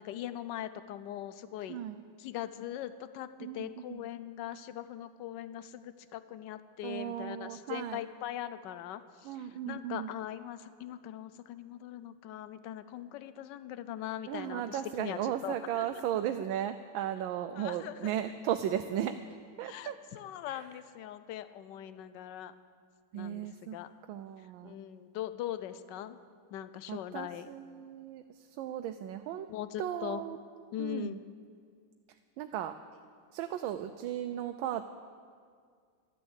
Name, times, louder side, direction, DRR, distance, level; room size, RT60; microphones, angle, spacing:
voice 1, 0.0-1.8 2.2-16.0 17.5-18.1 19.6-22.5 23.1-23.9 24.6-26.2 26.5-27.5 29.5-30.2 30.7-31.2, left 12 dB, 70° left, 13 dB, 1.2 m, -41 dB
voice 2, 1.7-2.0 3.4-4.0 6.8-8.0 9.2-10.1 14.3-19.2 19.6-20.0 20.5-20.6 23.1-23.8 24.1-24.8 26.9-28.2 28.5-29.5 29.8-30.4 30.8-31.2 32.4-32.8 33.3-34.9, right 10 dB, 80° right, 8 dB, 1.3 m, -36 dB
12.5 x 11.0 x 8.1 m, 2.1 s
omnidirectional pair, 2.2 m